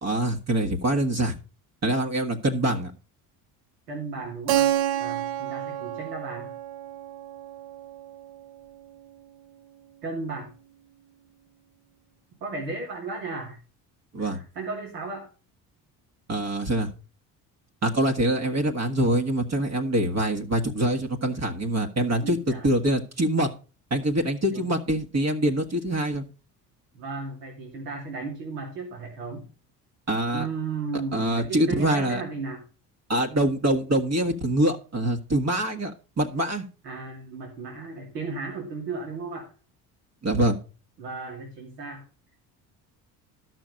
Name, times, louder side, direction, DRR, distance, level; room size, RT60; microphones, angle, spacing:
voice 1, 0.0-1.4 1.8-2.9 14.1-14.4 16.3-16.9 17.8-22.4 22.6-23.5 23.9-26.2 30.1-30.5 31.1-32.2 33.1-35.9 36.2-36.6 40.2-40.6, right 1 dB, 35° right, 3 dB, 1.7 m, -24 dB
voice 2, 3.9-4.7 5.0-6.5 10.0-10.5 12.4-13.6 14.2-15.3 22.2-22.7 24.5-24.7 26.9-29.4 30.3-32.6 36.8-39.5 41.0-42.0, right 4 dB, 85° right, -1 dB, 2.8 m, -35 dB
Keyboard (musical), 4.5-9.0, right 12 dB, 50° right, 0.7 m, -29 dB
12.0 x 6.3 x 5.2 m, 0.35 s
hypercardioid pair, 60°, 47 cm